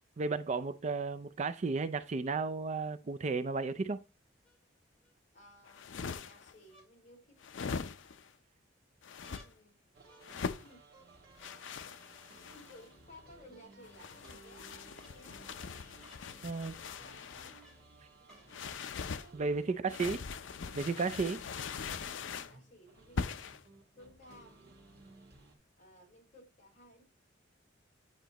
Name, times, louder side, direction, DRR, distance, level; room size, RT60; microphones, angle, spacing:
voice 1, 0.2-4.0 16.4-16.8 19.3-20.2 20.8-21.4, right 4 dB, 35° right, 0.4 m, -33 dB
sound 1, 4.4-5.1 6.7-6.9 7.5-8.1 9.2-9.5 10.1-10.6 11.4-11.9 12.9-13.0 14.2-14.4 15.0-15.2 16.0-16.3 17.6-17.9 18.3-18.5 19.4-19.5, equal, 5° left, 4.5 m, -62 dB
voice 2, 5.3-8.0 9.4-10.0 10.5-10.8 11.7-11.9 12.3-15.7 16.8-17.5 18.2-18.8 19.7-20.3 22.1-23.4 24.0-24.6 25.8-27.0, left 1 dB, 40° left, 4.0 m, -58 dB
sound 2, 5.7-6.5 7.4-8.3 9.0-9.4 10.2-10.7 11.4-12.8 13.8-17.6 18.5-19.3 19.9-22.6 23.2-23.6, left 5 dB, 75° left, 0.5 m, -41 dB
sound 3, 9.9-25.5, right 2 dB, 55° right, 1.8 m, -59 dB
9.1 x 5.1 x 2.9 m
head